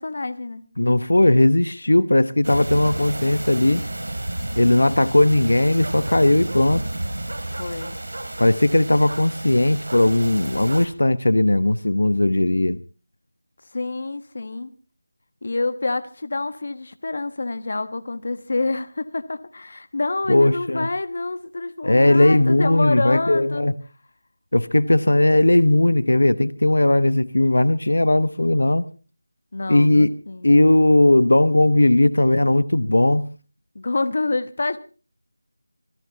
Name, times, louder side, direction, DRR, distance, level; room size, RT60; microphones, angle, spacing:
voice 1, 0.0-0.6 7.5-8.0 13.7-14.7 15.4-23.7 29.5-30.5 33.7-34.8, left 2 dB, 40° left, 1.2 m, -27 dB
voice 2, 0.8-3.8 4.6-6.8 8.4-12.8 20.3-20.9 21.8-23.7 24.5-28.9 29.7-30.1 30.4-33.2, left 1 dB, 75° left, 1.0 m, -17 dB
sound 1, 2.4-10.9, right 1 dB, 70° right, 2.9 m, -31 dB
25.5 x 16.0 x 2.9 m
figure-of-eight pair, 175°, 0 cm